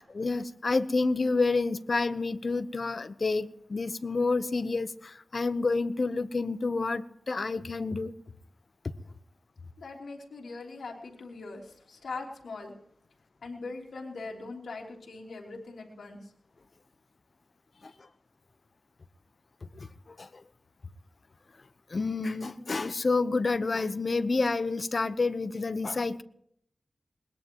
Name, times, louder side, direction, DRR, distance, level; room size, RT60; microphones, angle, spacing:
voice 1, 0.0-8.1 17.8-17.9 19.6-20.4 21.9-26.2, left 3 dB, 55° left, 13 dB, 0.9 m, -29 dB
voice 2, 9.8-12.7 13.4-16.3 17.7-18.0, left 3 dB, 90° left, -1 dB, 3.3 m, -41 dB
21.0 x 20.5 x 3.0 m, 0.70 s
wide cardioid pair, 65°, 0 cm